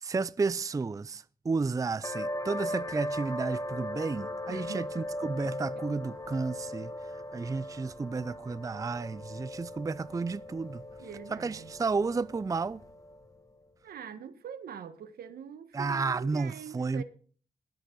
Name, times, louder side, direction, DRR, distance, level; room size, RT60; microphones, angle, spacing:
voice 1, 0.0-6.9 7.3-10.8 11.3-12.8 15.7-17.0, right 4 dB, 20° right, 0.4 m, -32 dB
sound 1, 2.0-13.3, left 1 dB, 20° left, 1.8 m, -39 dB
voice 2, 4.5-5.1 5.4-5.5 11.0-11.7 13.8-17.0, right 8 dB, 80° right, 1.3 m, -44 dB
20.5 x 8.0 x 3.9 m
cardioid pair, 70°, 16 cm